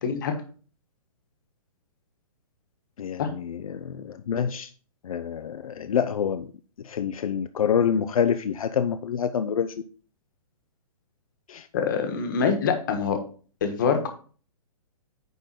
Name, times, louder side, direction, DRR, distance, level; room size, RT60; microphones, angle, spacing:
voice 1, 0.0-0.3 3.2-3.3 11.7-13.2 13.6-14.1, left 6 dB, 35° left, 1.3 m, -25 dB
voice 2, 3.0-4.7 5.0-6.5 6.8-9.7 11.5-11.7, left 7 dB, 70° left, 0.6 m, -27 dB
9.3 x 3.8 x 5.8 m
hypercardioid pair, 180°, 19 cm